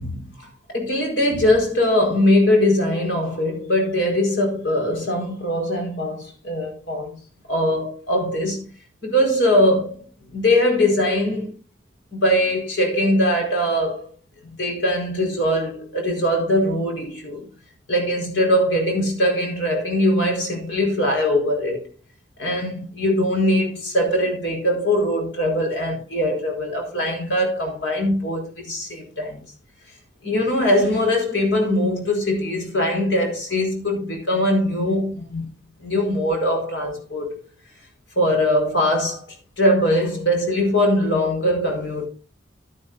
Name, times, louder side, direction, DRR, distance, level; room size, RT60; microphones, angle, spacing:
voice 1, 0.0-7.2 7.5-8.7 9.0-10.0 10.3-11.6 12.1-14.1 14.4-17.4 17.9-21.9 22.4-29.4 30.2-35.5 35.8-37.3 38.2-39.2 39.6-42.1, left 1 dB, 80° left, 4.5 m, -21 dB
11.5 x 11.0 x 2.6 m
head